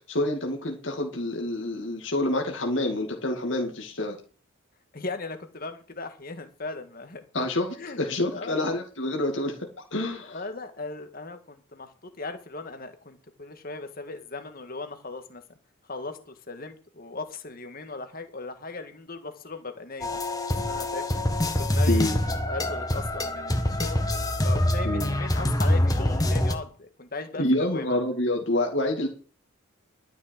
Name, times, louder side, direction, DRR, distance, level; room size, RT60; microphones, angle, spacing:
voice 1, 0.1-4.2 7.3-9.5 9.9-10.4 21.9-22.2 24.8-25.2 27.4-29.1, left 1 dB, 60° left, 1 dB, 2.4 m, -27 dB
voice 2, 4.9-7.2 7.8-8.0 8.3-8.5 10.2-15.4 15.9-20.2 20.6-21.1 21.5-22.2 22.5-24.0 24.4-28.0, left 3 dB, 45° left, 8 dB, 1.8 m, -38 dB
sound 1, 20.0-26.5, left 1 dB, 20° left, 1.4 m, -25 dB
12.5 x 6.3 x 7.5 m, 0.39 s
head